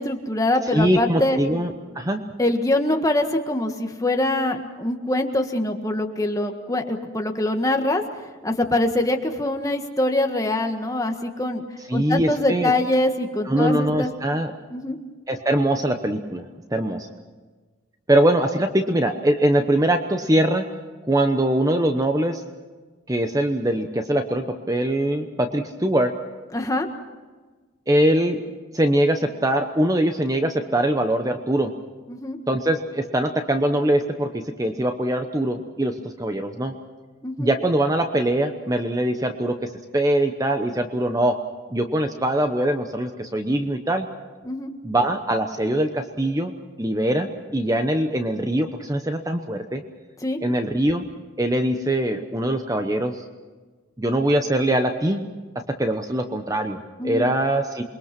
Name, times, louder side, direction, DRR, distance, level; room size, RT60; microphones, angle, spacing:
voice 1, 0.0-1.4 2.4-8.0 8.4-11.6 11.9-14.1 14.7-15.0 26.5-26.9 32.1-32.4 37.2-37.5 44.4-44.7 50.2-50.4 57.0-57.2, left 1 dB, 15° left, 4 dB, 1.6 m, -24 dB
voice 2, 0.7-2.2 11.9-12.7 13.5-14.5 15.3-16.4 16.7-17.1 18.1-20.6 21.1-22.4 23.1-26.1 27.9-28.4 28.7-31.7 32.5-36.7 37.4-41.4 41.7-44.1 44.8-46.5 46.8-49.8 50.4-51.1 51.4-53.2 54.0-55.2 55.8-57.8, right 1 dB, 15° right, 6 dB, 0.9 m, -22 dB
28.0 x 22.0 x 6.0 m, 1.3 s
head